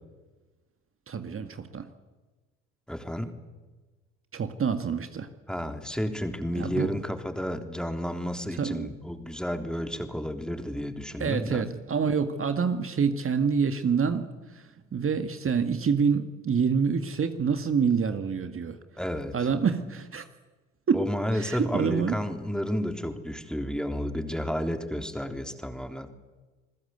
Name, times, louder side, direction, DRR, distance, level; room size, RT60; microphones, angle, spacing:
voice 1, 1.1-1.9 4.3-5.3 6.6-6.9 8.5-8.9 11.2-18.8 19.3-20.3 20.9-21.1 21.3-22.2, right 6 dB, 35° right, 8 dB, 1.9 m, -27 dB
voice 2, 2.9-3.3 5.5-11.6 19.0-19.5 20.9-26.1, equal, ahead, 6 dB, 3.5 m, -31 dB
28.0 x 21.5 x 8.1 m, 1.2 s
hypercardioid pair, 55°, 38 cm